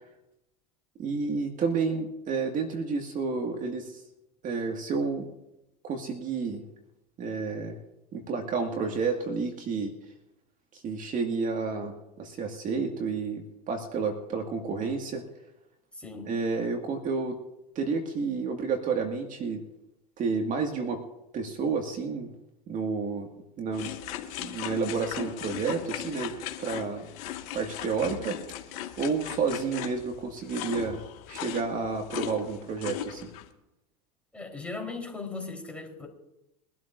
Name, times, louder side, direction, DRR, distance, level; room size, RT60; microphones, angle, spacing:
voice 1, 1.0-4.0 4.4-5.3 5.8-6.6 7.2-7.8 8.1-9.9 10.7-15.2 16.2-17.4 17.8-19.6 20.2-21.0 21.3-22.3 22.7-23.3 23.6-23.9 24.4-27.1 27.5-28.4 29.0-31.0 31.3-33.3, right 4 dB, 40° right, 3 dB, 2.1 m, -30 dB
voice 2, 15.9-16.3 34.3-36.1, left 3 dB, 5° left, 1 dB, 4.1 m, -38 dB
sound 1, 23.7-33.5, left 11 dB, 70° left, 1.8 m, -38 dB
23.5 x 12.5 x 2.6 m, 0.89 s
hypercardioid pair, 85°, 20 cm